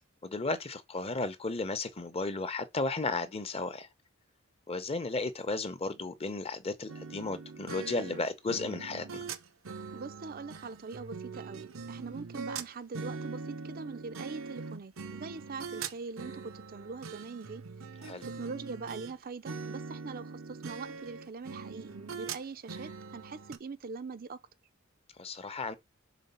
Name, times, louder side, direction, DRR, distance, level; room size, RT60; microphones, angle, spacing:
voice 1, 0.2-3.9 4.7-9.2 18.0-18.3 25.2-25.7, left 3 dB, 30° left, 0.8 m, -34 dB
sound 1, 6.9-19.1 19.5-23.6, right 4 dB, 75° right, 0.8 m, -42 dB
voice 2, 9.9-17.6 18.2-24.4, right 4 dB, 45° right, 0.5 m, -42 dB
5.0 x 3.7 x 5.5 m
head